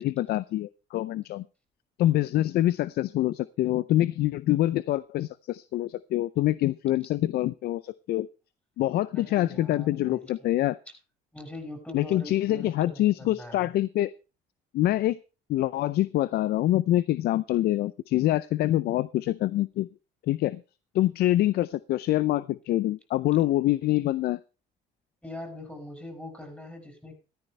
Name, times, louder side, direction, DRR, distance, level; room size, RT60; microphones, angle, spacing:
voice 1, 0.0-1.4 2.0-8.3 8.8-10.8 11.9-14.1 14.7-15.2 15.5-19.9 20.3-20.6 20.9-24.4, left 14 dB, 70° left, 18 dB, 0.5 m, -25 dB
voice 2, 9.1-10.5 11.3-13.7 25.2-27.2, left 1 dB, 10° left, 4 dB, 6.8 m, -42 dB
14.5 x 13.5 x 3.3 m, 0.32 s
cardioid pair, 110°, 17 cm